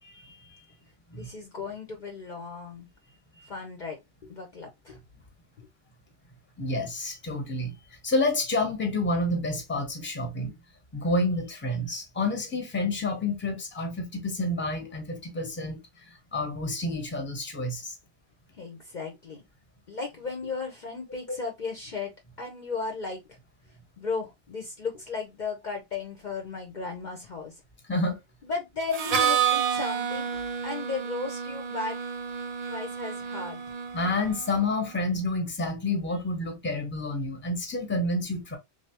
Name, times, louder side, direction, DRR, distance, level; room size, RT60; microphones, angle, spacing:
voice 1, 0.0-0.6 1.1-1.3 3.3-3.5 6.6-7.7 8.0-10.5 10.9-18.0 21.3-21.4 27.9-28.2 33.9-38.6, left 2 dB, 10° left, 0.9 m, -29 dB
voice 2, 1.1-2.9 3.5-5.0 5.6-5.7 18.6-19.4 19.9-22.1 22.4-23.4 24.0-27.5 28.4-32.0 32.7-33.6, left 4 dB, 50° left, 0.8 m, -35 dB
Harmonica, 28.9-34.7, right 8 dB, 55° right, 0.4 m, -30 dB
3.4 x 2.8 x 2.8 m
omnidirectional pair, 1.1 m